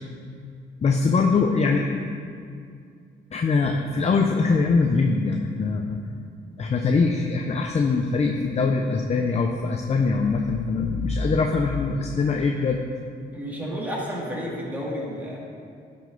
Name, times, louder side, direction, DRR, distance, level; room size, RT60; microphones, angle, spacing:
voice 1, 0.8-1.9 3.3-6.0 6.6-12.8, left 4 dB, 35° left, 3 dB, 0.6 m, -22 dB
voice 2, 13.3-15.4, equal, 10° right, -5 dB, 2.3 m, -31 dB
11.5 x 5.7 x 3.9 m, 2.3 s
cardioid pair, 90°, 20 cm